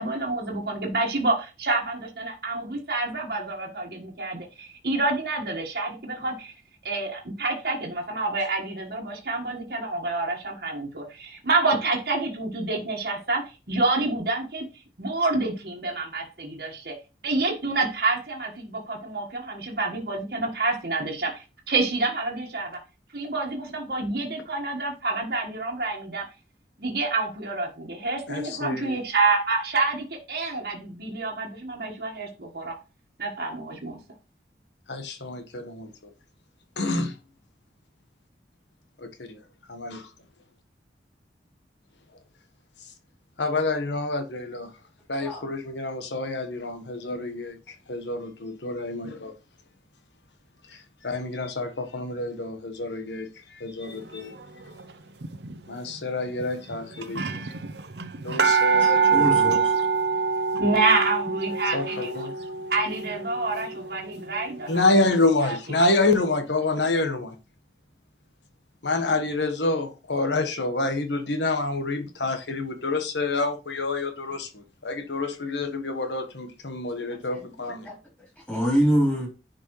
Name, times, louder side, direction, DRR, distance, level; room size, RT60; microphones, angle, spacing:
voice 1, 0.0-6.5 6.8-14.6 15.0-17.0 17.2-22.8 23.1-26.3 26.8-32.8 33.2-34.0 60.6-62.3 62.7-64.9 65.4-65.6, right 3 dB, 60° right, 1.5 m, -28 dB
voice 2, 28.3-29.0 34.9-35.9 36.8-37.1 39.0-39.4 39.7-40.0 43.4-44.7 45.1-49.3 50.6-54.3 55.7-57.4 58.2-59.7 61.7-62.3 64.7-67.4 68.8-77.9, left 2 dB, 85° left, 1.3 m, -28 dB
sound 1, 55.2-55.6 56.4-56.5 56.7-56.8 57.0-64.6 65.1-65.2, right 5 dB, 75° right, 0.7 m, -25 dB
voice 3, 58.8-59.7 77.8-77.9 78.5-79.3, equal, 10° left, 3.9 m, -24 dB
9.9 x 5.2 x 3.1 m
head